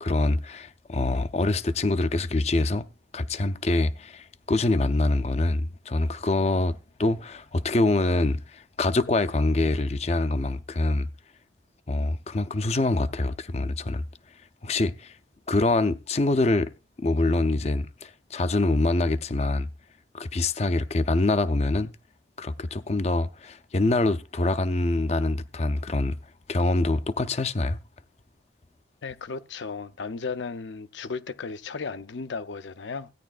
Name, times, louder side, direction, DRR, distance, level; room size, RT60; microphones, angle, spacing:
voice 1, 0.0-2.9 3.1-11.1 11.9-14.0 14.6-15.2 15.5-16.7 17.0-19.7 20.1-21.9 22.4-26.2 26.5-27.8, left 2 dB, 35° left, 0.5 m, -25 dB
voice 2, 29.0-33.1, left 4 dB, 80° left, 0.6 m, -35 dB
16.0 x 9.9 x 2.4 m
head